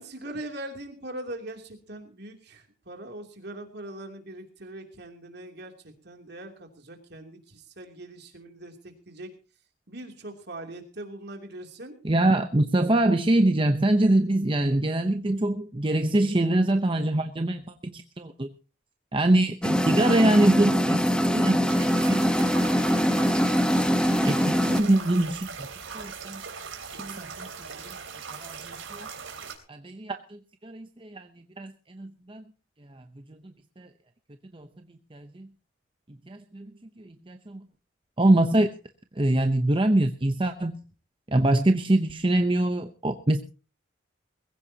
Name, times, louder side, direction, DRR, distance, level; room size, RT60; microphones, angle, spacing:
voice 1, 0.0-9.3 9.9-12.0, right 1 dB, 55° right, 4 dB, 3.0 m, -41 dB
voice 2, 12.0-18.5 19.1-22.3 23.0-23.2 24.3-25.7 25.9-26.4 27.0-27.7 28.4-29.1 29.7-31.3 31.6-32.4 32.9-33.0 33.8-33.9 34.5-34.7 35.1-35.5 36.3-36.7 37.0-37.6 38.2-38.7 39.2-40.8 41.3-43.4, right 1 dB, 25° right, 6 dB, 0.8 m, -24 dB
sound 1, 19.6-24.8, equal, 5° left, 1.0 m, -23 dB
sound 2, 21.6-29.5, right 5 dB, 80° right, 3.5 m, -40 dB
21.5 x 16.0 x 2.9 m, 0.35 s
head